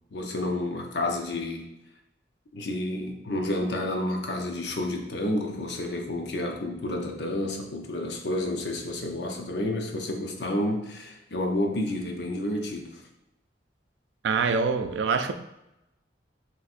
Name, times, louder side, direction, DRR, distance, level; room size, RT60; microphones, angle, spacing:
voice 1, 0.1-1.7 2.5-13.0, left 1 dB, 75° left, 2 dB, 0.7 m, -30 dB
voice 2, 14.2-15.3, right 5 dB, 90° right, 8 dB, 0.4 m, -25 dB
5.9 x 3.1 x 2.5 m, 0.89 s
head